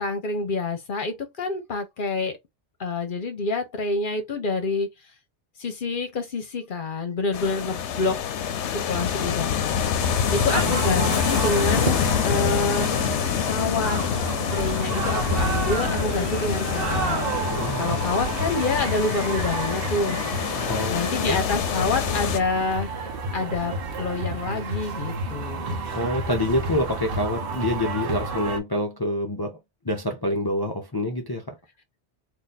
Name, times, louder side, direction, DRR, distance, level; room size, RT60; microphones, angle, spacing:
voice 1, 0.0-2.4 2.8-4.9 5.6-8.2 8.6-12.9 13.5-14.0 14.5-17.3 17.8-20.2 20.9-22.9 23.3-25.8, left 3 dB, 50° left, 0.8 m, -27 dB
sound 1, 7.3-22.4, left 8 dB, 85° left, 0.9 m, -26 dB
sound 2, 10.0-28.6, right 3 dB, 55° right, 0.9 m, -30 dB
voice 2, 10.3-10.7 17.5-18.0 20.7-21.0 21.2-21.4 25.9-29.6 29.8-31.6, left 1 dB, 35° left, 0.4 m, -27 dB
2.6 x 2.5 x 4.0 m
omnidirectional pair, 1.2 m